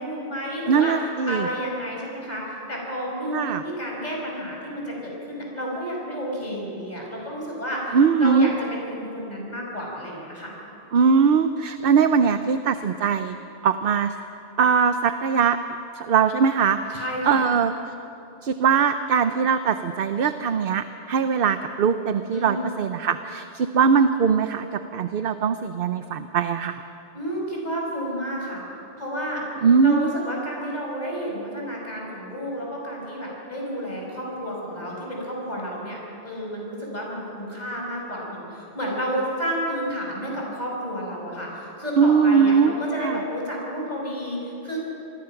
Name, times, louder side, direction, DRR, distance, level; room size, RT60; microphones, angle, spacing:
voice 1, 0.0-0.9 1.3-10.5 16.9-17.4 22.3-22.7 27.1-28.6 29.0-29.4 29.8-44.8, equal, 40° left, -2 dB, 5.9 m, -31 dB
voice 2, 0.7-1.5 3.3-3.6 7.9-8.5 10.9-13.4 13.6-14.2 14.6-15.6 15.9-17.7 18.4-26.8 29.6-30.1 42.0-43.2, right 6 dB, 60° right, 9 dB, 0.8 m, -21 dB
27.5 x 20.0 x 5.9 m, 2.8 s
omnidirectional pair, 1.2 m